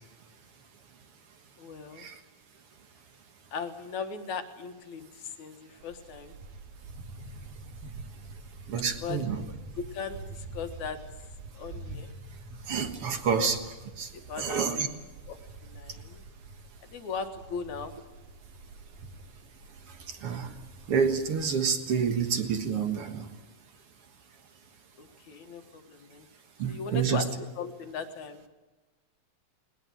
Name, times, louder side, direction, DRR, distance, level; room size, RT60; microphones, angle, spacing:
voice 1, 1.6-2.1 3.5-6.3 9.0-9.2 9.8-11.0 11.6-12.1 13.4-13.5 14.1-14.8 15.3-15.4 15.6-16.2 16.9-18.0 25.0-26.3 26.7-27.3 27.6-28.5, left 6 dB, 60° left, 7 dB, 2.6 m, -38 dB
sound 1, 5.8-21.6, right 3 dB, 85° right, 3.7 m, -46 dB
voice 2, 8.7-9.4 12.7-14.1 14.4-14.9 20.1-20.5 20.9-23.3 26.6-27.3, right 6 dB, 50° right, 8 dB, 2.0 m, -28 dB
20.5 x 20.5 x 9.1 m, 1.2 s
omnidirectional pair, 4.1 m